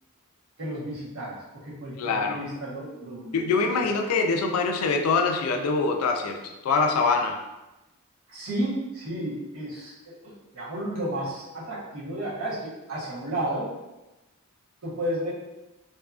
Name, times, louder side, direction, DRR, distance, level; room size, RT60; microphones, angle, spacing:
voice 1, 0.6-3.4 3.8-3.9 8.3-13.7 14.8-15.3, right 1 dB, 75° right, -7 dB, 1.0 m, -32 dB
voice 2, 2.0-2.4 3.3-7.4, left 4 dB, 85° left, 4 dB, 0.3 m, -24 dB
2.7 x 2.3 x 2.3 m, 1.0 s
head